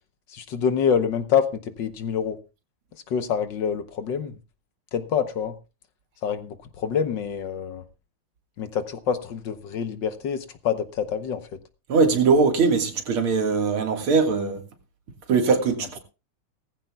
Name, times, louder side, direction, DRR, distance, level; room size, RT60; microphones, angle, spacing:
voice 1, 0.3-2.4 3.1-4.4 4.9-5.6 6.2-7.8 8.6-11.6, left 7 dB, 60° left, 1.5 m, -26 dB
voice 2, 11.9-14.6 15.3-16.0, right 4 dB, 75° right, 2.7 m, -21 dB
19.0 x 15.0 x 2.3 m
omnidirectional pair, 2.4 m